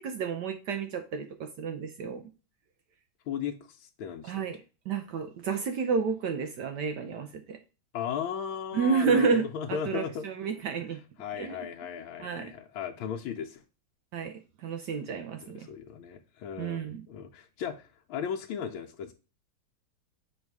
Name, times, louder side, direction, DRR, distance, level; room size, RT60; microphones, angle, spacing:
voice 1, 0.0-2.2 4.2-4.6 4.9-7.6 8.7-9.4 9.7-11.0 11.4-11.6 12.2-12.5 14.1-15.7 16.6-17.1, right 5 dB, 70° right, 1.2 m, -30 dB
voice 2, 3.3-4.3 7.9-10.3 11.2-13.6 15.4-19.1, left 7 dB, 85° left, 1.5 m, -36 dB
6.5 x 3.5 x 4.6 m
omnidirectional pair, 2.2 m